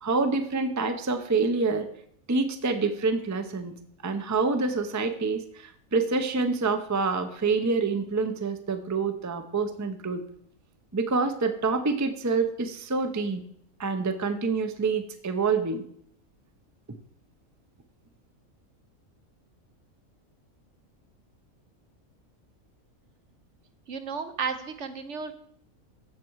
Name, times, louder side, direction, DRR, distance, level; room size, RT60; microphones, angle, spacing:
voice 1, 0.0-1.9 2.3-3.8 4.0-10.2 10.9-13.4 13.8-15.8, right 4 dB, 15° right, 7 dB, 0.6 m, -27 dB
voice 2, 23.9-25.4, right 5 dB, 60° right, 9 dB, 1.1 m, -33 dB
15.0 x 6.1 x 4.7 m, 0.68 s
omnidirectional pair, 1.5 m